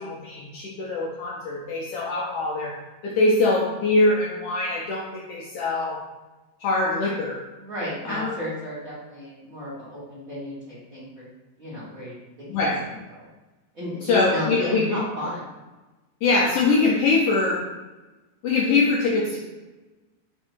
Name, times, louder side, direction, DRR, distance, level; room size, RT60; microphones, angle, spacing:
voice 1, 0.0-2.7 3.0-6.0 6.6-7.4 8.0-8.3 12.5-12.8 14.0-15.0 16.2-17.6 18.4-19.4, left 3 dB, 85° left, -4 dB, 1.3 m, -23 dB
voice 2, 7.6-11.3 11.6-12.2 12.6-13.3 13.7-15.4, left 1 dB, 55° right, -12 dB, 1.0 m, -33 dB
4.5 x 2.6 x 4.4 m, 1.1 s
omnidirectional pair, 3.4 m